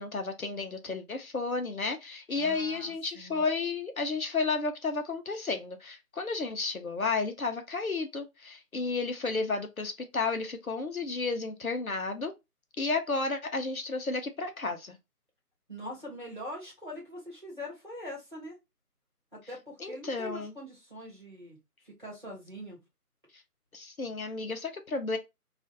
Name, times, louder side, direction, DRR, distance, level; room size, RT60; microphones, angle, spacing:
voice 1, 0.0-12.3 12.8-15.0 19.8-20.5 23.7-25.2, left 3 dB, 65° left, 0.6 m, -32 dB
voice 2, 2.3-3.4 15.7-18.6 19.3-21.6 21.8-22.8, equal, 30° right, 1.2 m, -43 dB
2.4 x 2.4 x 3.9 m
figure-of-eight pair, 180°, 47 cm